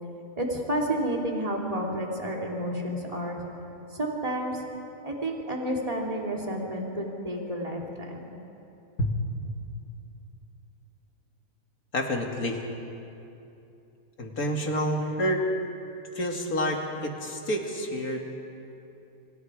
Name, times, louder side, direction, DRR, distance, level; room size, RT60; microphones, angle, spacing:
voice 1, 0.4-3.5 3.9-4.6 5.0-8.4, right 1 dB, 20° right, -1 dB, 3.0 m, -30 dB
voice 2, 11.9-12.6 14.2-15.4 16.2-18.2, equal, 60° left, 1 dB, 2.8 m, -28 dB
28.5 x 26.0 x 4.9 m, 2.8 s
omnidirectional pair, 1.7 m